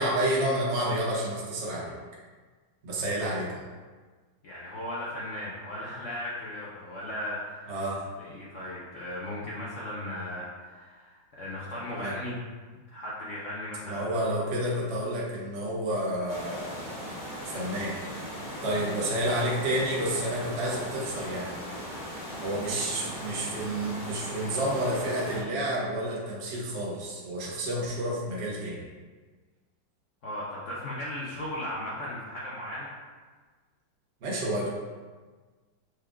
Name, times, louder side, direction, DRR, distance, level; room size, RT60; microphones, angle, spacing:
voice 1, 0.0-1.9 2.8-3.6 7.7-8.0 12.0-12.1 13.8-17.0 17.5-17.9 18.6-21.6 22.4-28.8 34.2-34.7, right 1 dB, 50° right, -5 dB, 0.8 m, -30 dB
voice 2, 4.4-7.8 8.2-12.4 12.9-14.1 30.2-32.9, left 1 dB, 80° left, -6 dB, 0.6 m, -37 dB
sound 1, 16.3-25.4, equal, 35° left, 0.8 m, -38 dB
6.2 x 2.3 x 3.6 m, 1.4 s
omnidirectional pair, 2.2 m